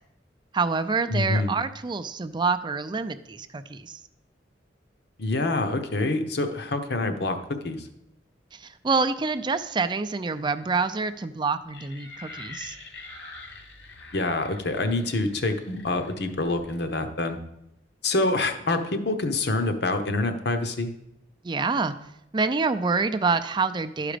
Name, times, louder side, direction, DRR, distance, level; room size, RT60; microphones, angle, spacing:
voice 1, 0.5-4.0 8.5-12.8 21.4-21.9 22.3-24.2, right 4 dB, 25° right, 10 dB, 0.4 m, -27 dB
voice 2, 1.1-1.5 5.2-7.4 7.6-7.9 14.1-17.4 18.0-20.9, left 2 dB, 65° left, 6 dB, 0.9 m, -26 dB
sound 1, 11.7-17.0, left 3 dB, 85° left, 2.1 m, -45 dB
11.5 x 5.0 x 5.0 m, 0.82 s
head